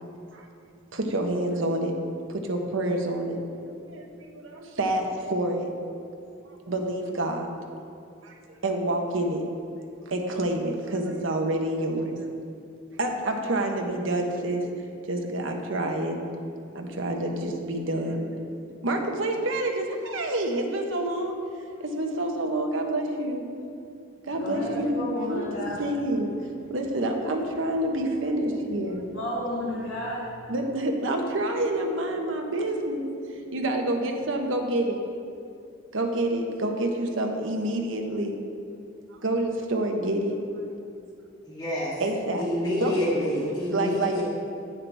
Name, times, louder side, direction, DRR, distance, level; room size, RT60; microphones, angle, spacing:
voice 1, 0.9-1.9 2.5-3.4 3.8-5.7 6.7-7.5 8.2-9.4 10.1-12.2 13.0-14.6 15.1-16.2 16.7-18.3 18.7-21.4 21.8-23.4 24.3-25.4 25.8-26.3 26.7-29.0 30.5-33.1 33.5-35.0 35.9-38.4 39.2-40.4 42.0-42.4 42.8-43.0 43.7-44.2, right 1 dB, 80° right, 2 dB, 1.1 m, -28 dB
voice 2, 24.4-25.9 29.1-30.5, left 1 dB, 70° left, -9 dB, 2.1 m, -32 dB
voice 3, 41.4-42.0 42.4-44.2, left 1 dB, 20° left, -7 dB, 2.1 m, -27 dB
10.5 x 9.5 x 3.5 m, 2.5 s
head